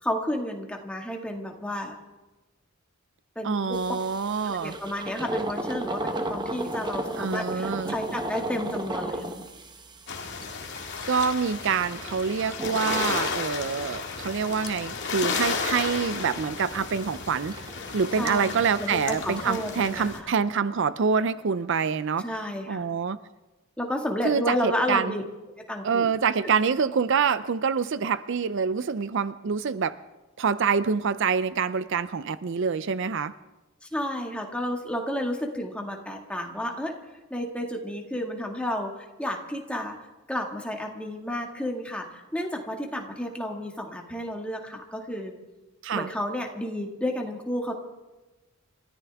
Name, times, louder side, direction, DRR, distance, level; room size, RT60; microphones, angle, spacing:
voice 1, 0.0-1.9 3.4-3.8 4.4-9.3 18.2-20.3 22.2-22.8 23.8-25.2 25.7-26.1 33.9-36.9 37.3-38.9 39.2-40.0 40.3-45.3 45.9-47.8, equal, 5° left, 1 dB, 1.9 m, -31 dB
voice 2, 3.4-4.8 7.2-7.9 11.0-17.6 17.9-22.3 22.7-23.2 24.2-25.1 25.8-30.0 30.4-33.3 45.8-46.1, right 6 dB, 60° right, 14 dB, 0.5 m, -26 dB
sound 1, 3.7-18.4, right 1 dB, 20° right, 1.0 m, -36 dB
sound 2, 10.1-20.2, left 5 dB, 55° left, 2.1 m, -33 dB
29.0 x 14.0 x 3.5 m, 1.1 s
head